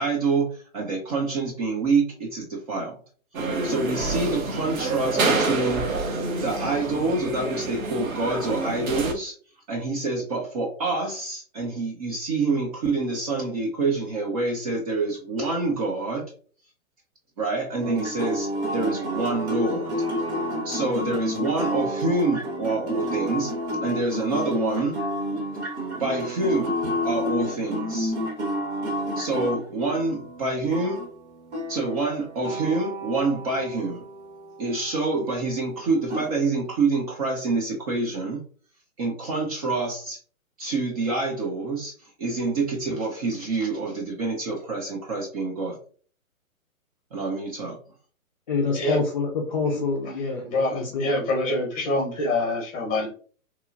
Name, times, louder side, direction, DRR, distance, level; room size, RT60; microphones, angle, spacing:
voice 1, 0.0-2.9 3.6-5.8 6.4-9.3 9.7-16.2 17.4-19.9 20.6-23.5 23.8-25.0 26.0-26.7 27.0-28.1 29.2-31.0 31.7-34.0 34.6-38.4 39.0-40.2 40.6-45.8 47.1-47.8, right 3 dB, 25° right, -1 dB, 0.5 m, -26 dB
sound 1, 3.3-9.1, right 3 dB, 70° right, 0.8 m, -27 dB
sound 2, 17.8-35.2 36.1-36.3, equal, 50° right, 1.1 m, -30 dB
voice 2, 48.5-50.4 50.7-51.1, left 4 dB, 35° left, -2 dB, 0.4 m, -26 dB
voice 3, 50.4-53.1, left 2 dB, 20° left, 0 dB, 0.9 m, -25 dB
3.0 x 2.2 x 2.3 m, 0.42 s
hypercardioid pair, 130°, 42 cm